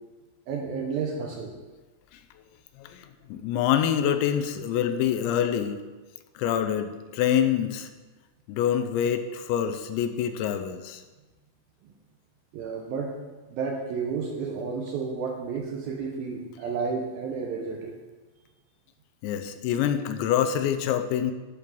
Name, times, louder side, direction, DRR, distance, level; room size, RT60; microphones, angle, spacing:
voice 1, 0.5-1.5 12.5-13.2 13.5-17.9, right 5 dB, 75° right, 0 dB, 2.2 m, -31 dB
voice 2, 3.3-5.8 6.4-7.9 8.5-11.0 19.2-21.3, left 9 dB, 90° left, 8 dB, 3.0 m, -26 dB
10.5 x 5.3 x 6.1 m, 1.2 s
omnidirectional pair, 5.1 m